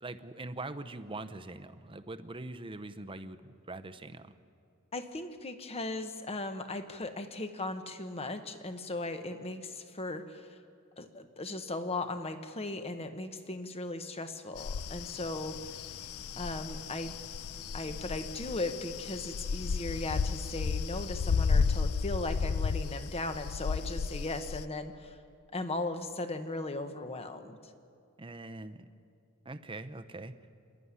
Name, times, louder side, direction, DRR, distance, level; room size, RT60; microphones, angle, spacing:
voice 1, 0.0-4.3 28.2-28.9 29.4-30.3, right 2 dB, 25° right, 11 dB, 0.8 m, -42 dB
voice 2, 4.9-10.6 11.0-15.9 16.4-17.1 17.7-25.2 25.5-27.6, left 2 dB, 30° left, 8 dB, 1.2 m, -37 dB
sound 1, 14.6-24.6, left 5 dB, 80° left, 0.5 m, -33 dB
26.5 x 11.5 x 9.7 m, 2.4 s
head